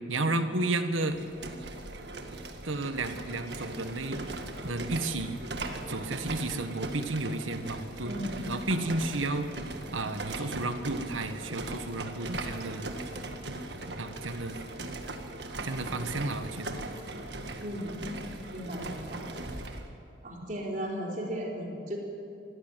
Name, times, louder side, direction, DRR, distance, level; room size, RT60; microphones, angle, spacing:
voice 1, 0.1-1.2 2.6-4.2 4.6-5.4 5.9-8.2 8.5-9.5 9.9-12.9 14.0-14.6 15.6-16.8, right 2 dB, 90° right, 8 dB, 1.6 m, -32 dB
sound 1, 1.0-19.9, right 2 dB, 60° right, 1.8 m, -39 dB
voice 2, 8.0-8.4 16.8-16.9 17.6-18.0 18.5-19.2 20.2-22.0, equal, 40° right, -1 dB, 4.0 m, -36 dB
24.5 x 15.5 x 9.3 m, 2.7 s
head